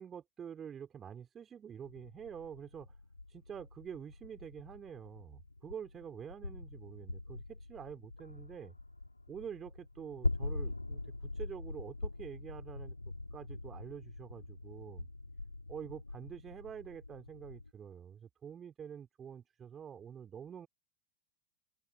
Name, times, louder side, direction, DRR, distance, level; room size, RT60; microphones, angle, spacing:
voice 1, 0.0-3.0 3.3-8.7 9.3-12.9 13.3-15.1 15.7-20.7, right 8 dB, 25° right, 4.0 m, -47 dB
sound 1, 1.8-17.7, left 2 dB, 85° left, 3.0 m, -43 dB
figure-of-eight pair, 90°, 0 cm